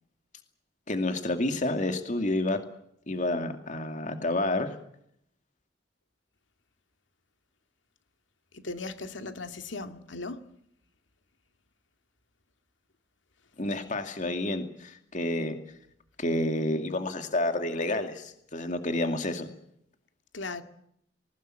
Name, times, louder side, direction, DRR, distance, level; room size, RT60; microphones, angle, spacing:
voice 1, 0.9-2.6 3.1-4.7 13.6-15.6 16.2-19.5, left 1 dB, 40° left, 2.4 m, -29 dB
voice 2, 8.5-10.4 20.3-20.6, left 3 dB, 85° left, 2.2 m, -37 dB
20.5 x 19.5 x 9.0 m
head